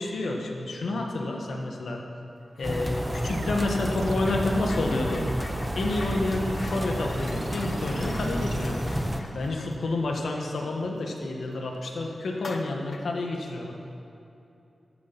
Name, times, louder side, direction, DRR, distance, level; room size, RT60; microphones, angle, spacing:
voice 1, 0.0-2.0 2.6-5.3 5.7-8.8 9.3-13.7, left 2 dB, 75° left, 1 dB, 1.3 m, -29 dB
sound 1, 2.5-2.9 3.1-11.3 11.7-11.8 12.3-13.2, left 3 dB, 40° left, 0.7 m, -45 dB
sound 2, 2.6-9.2, equal, ahead, 0.7 m, -30 dB
sound 3, 3.2-9.7, right 5 dB, 80° right, 0.4 m, -40 dB
13.5 x 7.8 x 5.9 m, 2.7 s
wide cardioid pair, 160°, 0 cm